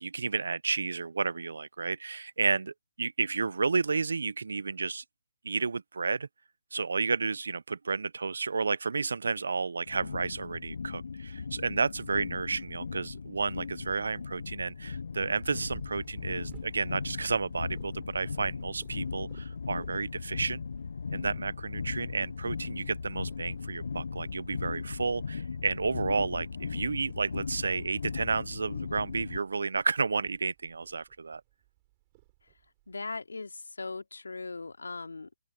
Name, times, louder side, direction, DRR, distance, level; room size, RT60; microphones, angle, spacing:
voice 1, 0.0-5.0 5.4-6.3 6.7-20.6 21.1-31.4, right 4 dB, 70° right, 1.0 m, -31 dB
sound 1, 9.9-29.4, left 5 dB, 60° left, 0.8 m, -38 dB
Purr, 15.3-33.2, right 22 dB, 25° right, 7.8 m, -58 dB
voice 2, 32.9-35.4, left 3 dB, 75° left, 2.9 m, -39 dB
open air
figure-of-eight pair, 155°, 0 cm